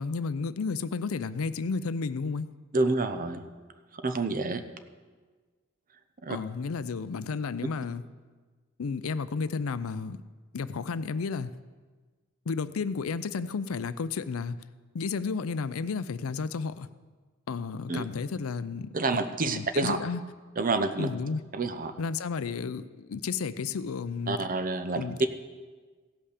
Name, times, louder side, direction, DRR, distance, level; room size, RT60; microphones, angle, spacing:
voice 1, 0.0-2.5 6.3-8.0 8.8-10.2 10.5-11.5 12.5-14.6 14.9-16.9 17.5-19.2 19.5-20.2 21.0-21.4 22.0-24.4 24.9-25.3, left 5 dB, 90° left, 14 dB, 0.5 m, -32 dB
voice 2, 2.7-3.4 3.9-4.6 6.2-6.4 17.9-18.0 18.9-20.0 20.6-21.1 21.5-21.9 24.3-25.3, right 3 dB, 40° right, 9 dB, 0.7 m, -28 dB
16.5 x 5.6 x 6.6 m, 1.4 s
head